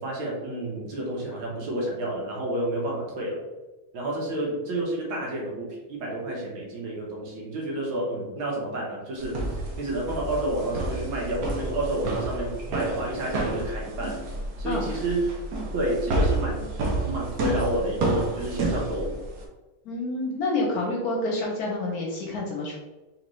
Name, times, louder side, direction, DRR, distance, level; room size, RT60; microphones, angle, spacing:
voice 1, 0.0-3.4 3.9-14.2 14.6-15.3 15.7-16.7 17.0-19.2, right 1 dB, 80° right, -3 dB, 1.9 m, -30 dB
sound 1, 9.2-19.4, right 2 dB, 60° right, 1.0 m, -30 dB
voice 2, 19.8-22.8, left 2 dB, 60° left, -2 dB, 1.0 m, -28 dB
4.1 x 3.0 x 3.0 m, 1.1 s
omnidirectional pair, 2.2 m